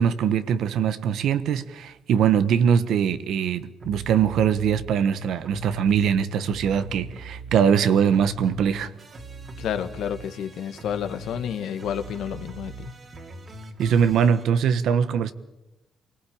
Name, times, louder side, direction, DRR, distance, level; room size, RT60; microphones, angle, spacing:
voice 1, 0.0-8.9 13.8-15.3, right 7 dB, 75° right, 12 dB, 1.3 m, -22 dB
sound 1, 3.8-4.9 5.4-7.8 8.1-14.4, right 2 dB, 45° right, 3.0 m, -40 dB
voice 2, 9.6-12.9, left 9 dB, 80° left, 9 dB, 1.7 m, -30 dB
25.5 x 18.5 x 8.7 m, 1.0 s
cardioid pair, 90°, 0 cm